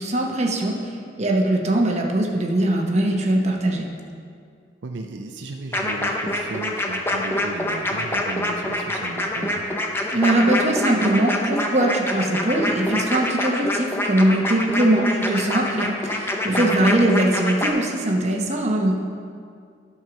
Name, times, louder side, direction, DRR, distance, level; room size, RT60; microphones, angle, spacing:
voice 1, 0.0-3.9 10.1-18.9, right 1 dB, 40° right, 1 dB, 1.1 m, -21 dB
voice 2, 4.8-9.6 16.5-16.8, right 2 dB, 80° right, 3 dB, 0.6 m, -35 dB
sound 1, 5.7-17.7, left 1 dB, 15° left, 0.7 m, -25 dB
12.0 x 4.6 x 6.0 m, 2.3 s
head